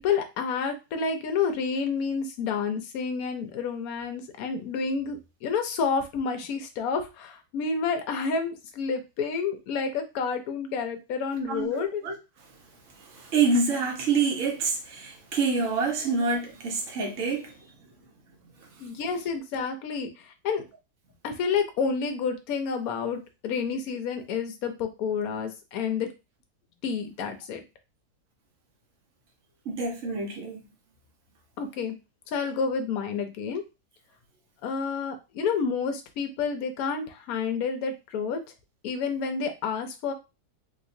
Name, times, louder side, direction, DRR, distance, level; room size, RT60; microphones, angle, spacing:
voice 1, 0.0-12.0 16.1-16.2 18.8-20.6 21.2-26.1 26.8-27.6 31.6-32.0 32.3-33.6 34.6-38.4 38.8-40.1, left 5 dB, 65° left, 1.0 m, -29 dB
voice 2, 11.5-12.1 13.1-17.6 29.7-30.6, right 4 dB, 50° right, 1.2 m, -27 dB
3.5 x 2.9 x 2.6 m
omnidirectional pair, 2.0 m